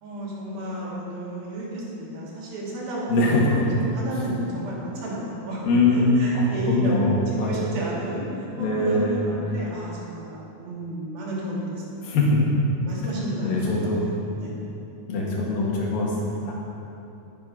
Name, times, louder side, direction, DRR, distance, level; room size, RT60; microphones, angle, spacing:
voice 1, 0.0-5.6 5.9-12.1 12.8-14.5, right 1 dB, 85° right, -5 dB, 4.4 m, -33 dB
voice 2, 3.1-3.6 5.6-7.7 8.6-9.3 12.0-12.4 13.4-14.0 15.1-16.1 16.4-16.6, left 2 dB, 75° left, -3 dB, 3.6 m, -22 dB
11.5 x 10.5 x 5.5 m, 2.8 s
omnidirectional pair, 4.1 m